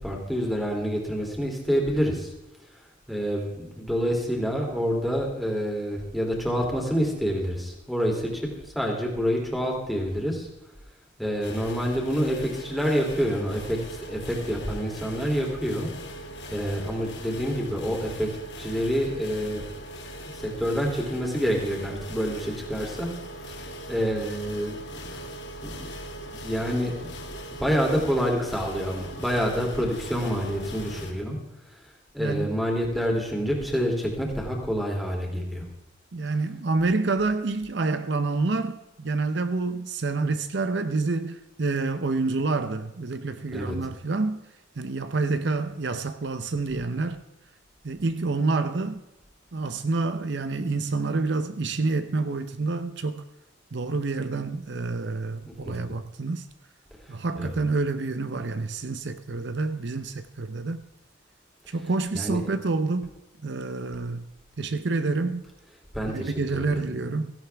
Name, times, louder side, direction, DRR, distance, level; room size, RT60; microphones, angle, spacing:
voice 1, 0.0-2.3 3.1-10.5 11.2-15.9 16.5-19.6 20.3-23.1 23.4-25.3 25.6-25.9 26.2-27.2 27.5-31.4 32.1-35.7 43.5-43.8 55.6-55.8 57.0-57.6 61.8-62.4 65.9-66.8, equal, ahead, 3.0 m, -28 dB
sound 1, 11.4-31.1, equal, 60° left, 2.1 m, -40 dB
voice 2, 32.2-32.5 36.1-44.4 44.8-47.2 47.8-49.0 49.5-53.2 53.7-56.5 57.1-60.8 61.7-63.1 63.4-64.3 64.6-65.4 66.1-67.3, right 3 dB, 60° right, 0.7 m, -28 dB
17.0 x 16.0 x 3.5 m
head